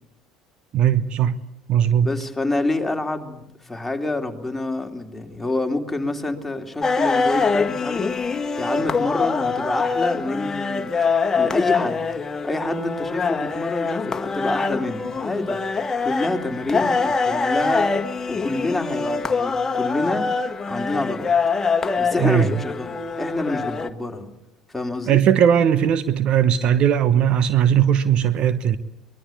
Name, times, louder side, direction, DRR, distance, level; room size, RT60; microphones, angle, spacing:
voice 1, 0.7-1.4 1.7-2.1 22.2-22.5 25.1-28.8, right 9 dB, 50° right, 1.0 m, -18 dB
voice 2, 2.0-8.2 8.6-12.0 12.3-15.6 16.0-18.0 18.3-20.3 20.7-21.3 22.0-24.3 24.7-25.2, left 2 dB, 5° left, 3.0 m, -27 dB
sound 1, 6.8-23.9, left 4 dB, 20° left, 1.6 m, -24 dB
24.0 x 21.0 x 8.5 m
figure-of-eight pair, 65°, 2 cm